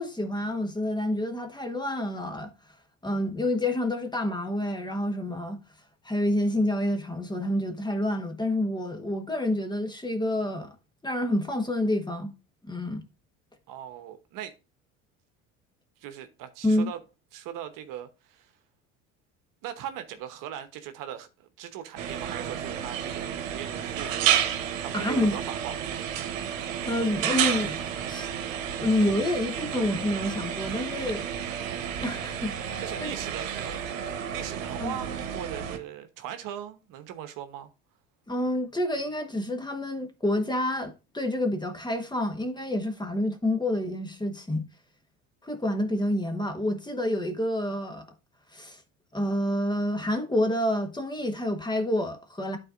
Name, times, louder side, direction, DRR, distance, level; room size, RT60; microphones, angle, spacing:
voice 1, 0.0-2.5 3.0-5.6 6.0-10.7 11.0-12.3 12.6-13.0 16.6-16.9 24.9-25.4 26.8-28.3 28.8-31.3 32.0-33.1 34.8-34.9 38.3-44.7 45.4-48.0 48.5-48.8 49.1-52.6, left 1 dB, 10° left, 1.3 m, -28 dB
voice 2, 13.7-14.5 16.0-17.0 17.3-18.5 19.6-24.3 24.8-25.8 32.8-33.8 34.1-37.7, right 10 dB, 55° right, 1.0 m, -39 dB
sound 1, 22.0-35.8, right 9 dB, 80° right, 1.0 m, -31 dB
12.0 x 4.2 x 2.5 m
hypercardioid pair, 70°, 39 cm